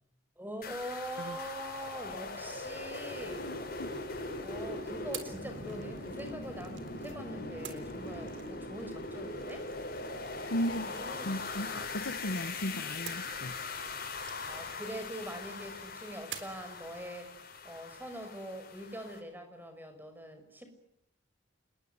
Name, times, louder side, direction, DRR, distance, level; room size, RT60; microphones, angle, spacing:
voice 1, 0.4-3.5 4.4-9.7 10.7-11.4 14.5-17.3 17.6-20.7, right 1 dB, 10° right, 5.9 m, -43 dB
sound 1, 0.6-19.2, left 3 dB, 50° left, 8.0 m, -41 dB
sound 2, 2.8-4.3 5.1-7.2 7.6-12.3 13.1-15.5 16.3-16.7, right 9 dB, 80° right, 3.8 m, -51 dB
voice 2, 3.4-3.9 10.5-13.6, equal, 90° left, 1.3 m, -36 dB
28.5 x 21.5 x 9.6 m
head